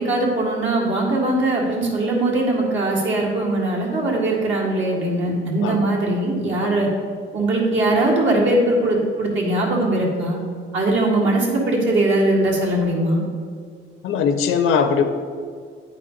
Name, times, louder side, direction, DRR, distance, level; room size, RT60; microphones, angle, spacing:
voice 1, 0.0-6.9 7.3-10.4 10.7-13.2, right 1 dB, 70° right, -3 dB, 2.1 m, -20 dB
voice 2, 14.0-15.0, left 6 dB, 85° left, 8 dB, 0.7 m, -20 dB
9.6 x 4.2 x 5.2 m, 2.1 s
cardioid pair, 110°, 21 cm